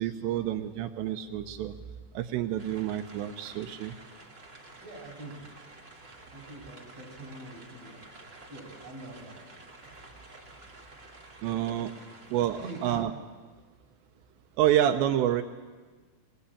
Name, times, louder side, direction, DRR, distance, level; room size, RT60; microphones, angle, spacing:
voice 1, 0.0-1.7 2.1-3.9 11.4-11.9 12.3-13.1 14.6-15.4, right 11 dB, 90° right, 7 dB, 3.1 m, -28 dB
sound 1, 2.6-13.0, right 2 dB, 55° right, 0.6 m, -51 dB
voice 2, 4.8-5.4 6.3-7.9 8.5-9.4 9.8-9.9 11.9-12.1 12.6-13.1, right 2 dB, 35° right, -2 dB, 6.4 m, -44 dB
22.5 x 19.0 x 8.4 m, 1.4 s
omnidirectional pair, 4.9 m